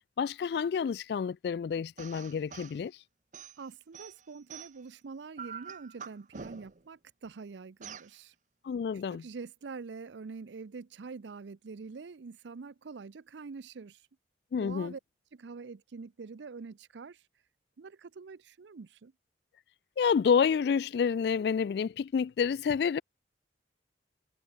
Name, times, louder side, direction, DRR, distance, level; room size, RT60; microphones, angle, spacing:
voice 1, 0.2-2.9 8.6-9.2 14.5-14.9 20.0-23.0, left 6 dB, 60° left, 0.3 m, -29 dB
sound 1, 2.0-2.8 3.3-4.9 5.4-6.9 7.8-8.1, right 6 dB, 45° right, 0.9 m, -46 dB
voice 2, 3.6-8.3 9.1-14.0 14.6-15.0 15.3-17.2 17.8-19.1, right 4 dB, 80° right, 0.5 m, -45 dB
head